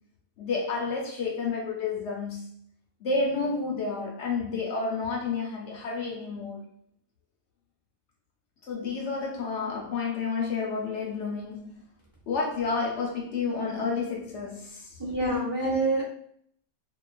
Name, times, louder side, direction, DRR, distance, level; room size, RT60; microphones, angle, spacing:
voice 1, 0.4-2.4 3.0-6.7 8.7-11.8 12.3-15.0, left 4 dB, 65° left, 0.8 m, -30 dB
voice 2, 15.0-16.0, right 2 dB, 30° right, 0.5 m, -26 dB
2.4 x 2.3 x 2.2 m
omnidirectional pair, 1.4 m